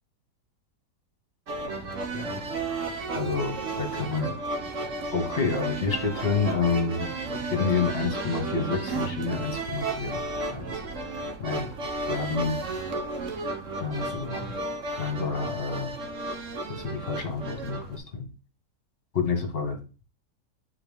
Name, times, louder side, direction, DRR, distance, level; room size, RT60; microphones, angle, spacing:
sound 1, 1.5-18.0, right 2 dB, 50° right, 1.4 m, -33 dB
voice 1, 2.1-2.5 3.1-4.3 5.1-7.0 7.5-10.2 10.5-10.7 11.4-11.7 12.1-12.6 13.8-14.5 15.0-15.9 16.7-18.3 19.1-19.8, left 4 dB, 35° left, 4 dB, 1.9 m, -28 dB
8.6 x 4.1 x 3.6 m, 0.34 s
omnidirectional pair, 1.8 m